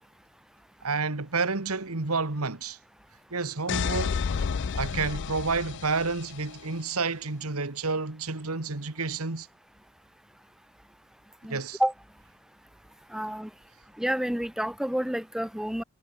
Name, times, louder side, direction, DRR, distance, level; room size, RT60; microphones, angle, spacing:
voice 1, 0.8-2.8 3.3-4.4 4.7-9.5 11.5-11.8, right 4 dB, 80° right, 1.8 m, -30 dB
sound 1, 3.7-6.6, left 6 dB, 55° left, 0.4 m, -31 dB
voice 2, 11.4-11.9 13.1-13.5 14.0-15.8, equal, ahead, 0.5 m, -29 dB
head